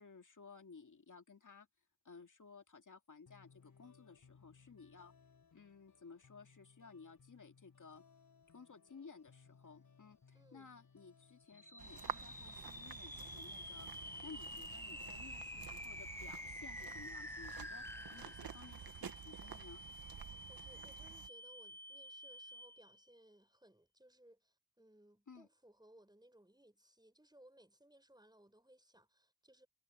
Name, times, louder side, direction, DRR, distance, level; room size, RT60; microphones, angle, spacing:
voice 1, 0.0-1.7 2.0-5.1 5.5-8.0 8.5-17.9 18.1-19.8 25.3-25.5, left 5 dB, 60° left, 2.2 m, -57 dB
sound 1, 3.3-18.3, left 5 dB, 80° left, 3.5 m, -67 dB
voice 2, 10.3-10.7 20.5-29.7, right 1 dB, 10° right, 5.9 m, -64 dB
sound 2, 11.5-23.0, left 1 dB, 5° left, 0.9 m, -49 dB
sound 3, 11.8-21.3, right 8 dB, 85° right, 1.2 m, -51 dB
cardioid pair, 50°, 35 cm